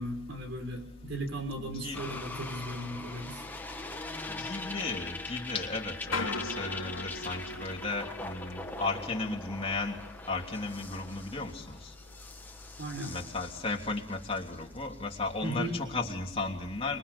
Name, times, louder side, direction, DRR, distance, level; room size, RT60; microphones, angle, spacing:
voice 1, 0.0-3.4 12.8-13.2 15.4-15.8, right 1 dB, 65° right, 6 dB, 5.2 m, -36 dB
voice 2, 1.6-2.0 4.3-10.0 10.3-11.8 13.1-17.0, left 3 dB, 30° left, 0 dB, 3.2 m, -35 dB
sound 1, 1.9-15.3 15.7-15.8, left 2 dB, 10° left, 1.5 m, -42 dB
sound 2, 6.0-11.3 11.6-12.2 12.8-13.0, left 3 dB, 85° left, 1.5 m, -41 dB
25.5 x 23.0 x 7.0 m, 0.73 s
head